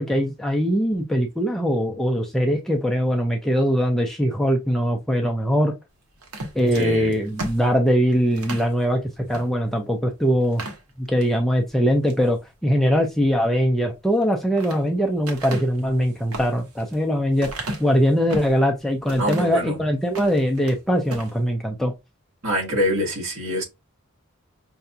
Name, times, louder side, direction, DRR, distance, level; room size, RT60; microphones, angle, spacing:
voice 1, 0.0-5.7 6.5-10.6 11.0-21.9, equal, ahead, 0.5 m, -21 dB
sound 1, 6.2-8.7 9.3-9.5 9.8-9.9 10.4-11.3 11.8-12.3 14.1-14.8 15.2-18.6 19.1-19.6 20.0-20.8 21.0-21.3, right 2 dB, 85° right, 1.1 m, -35 dB
voice 2, 6.7-7.1 19.2-19.8 22.4-23.6, left 1 dB, 70° right, 1.7 m, -24 dB
5.7 x 2.3 x 2.6 m
head